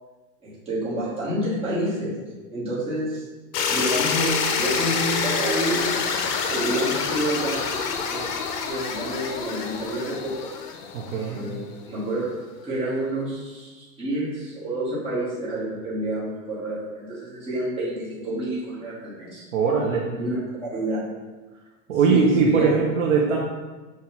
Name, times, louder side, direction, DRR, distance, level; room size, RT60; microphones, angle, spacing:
voice 1, 0.4-2.2 2.5-3.2 3.7-6.0 6.5-7.7 8.1-8.3 8.6-10.5 11.3-12.3 12.6-19.4 20.1-21.1 22.1-22.8, right 1 dB, 10° right, -9 dB, 1.0 m, -29 dB
sound 1, 3.5-11.5, left 5 dB, 70° left, 0.6 m, -27 dB
voice 2, 10.9-11.4 19.5-20.1 21.9-23.4, right 5 dB, 55° right, -1 dB, 0.6 m, -20 dB
5.4 x 2.3 x 2.9 m, 1.2 s
supercardioid pair, 160°, 48 cm